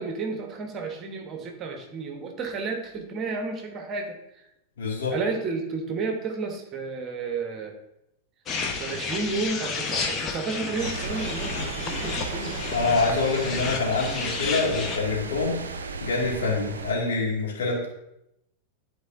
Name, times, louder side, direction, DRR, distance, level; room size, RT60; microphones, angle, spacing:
voice 1, 0.0-4.2 5.1-7.8 8.8-12.6, right 4 dB, 30° right, 4 dB, 1.1 m, -32 dB
voice 2, 4.8-5.1 12.7-15.6 16.0-17.9, left 3 dB, 60° left, -3 dB, 2.1 m, -26 dB
sound 1, 8.5-15.0, left 4 dB, 30° left, 0.9 m, -32 dB
sound 2, 10.8-16.9, right 3 dB, 70° right, 0.5 m, -35 dB
11.5 x 4.6 x 2.6 m, 0.83 s
figure-of-eight pair, 90°, 0 cm